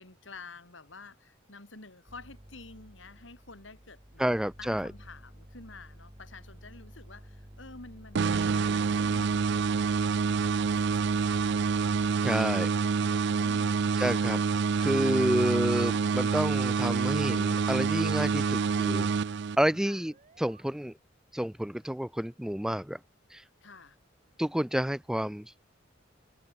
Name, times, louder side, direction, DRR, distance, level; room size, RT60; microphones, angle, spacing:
voice 1, 0.0-4.2 4.6-9.7 10.0-10.7 11.0-14.3 15.2-15.4 19.8-20.0 23.6-24.0, left 3 dB, 70° left, 3.7 m, -50 dB
sound 1, 2.1-12.1, equal, 25° right, 2.1 m, -51 dB
voice 2, 4.2-4.9 12.2-12.7 14.0-14.4 14.8-19.1 19.6-20.9 21.3-23.0 23.3-23.4 24.4-25.6, equal, 5° right, 0.4 m, -29 dB
sound 2, 8.1-19.9, right 5 dB, 65° right, 0.5 m, -27 dB
sound 3, 19.9-20.6, right 4 dB, 45° right, 2.8 m, -60 dB
head